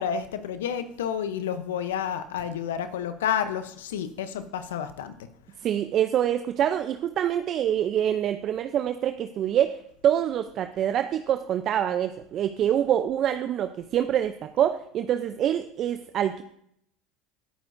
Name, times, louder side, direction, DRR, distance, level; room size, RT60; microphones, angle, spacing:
voice 1, 0.0-5.1, left 8 dB, 80° left, 11 dB, 0.8 m, -30 dB
voice 2, 5.6-16.4, right 10 dB, 50° right, 9 dB, 0.6 m, -25 dB
19.0 x 9.3 x 2.6 m, 0.72 s
hypercardioid pair, 80°, 0 cm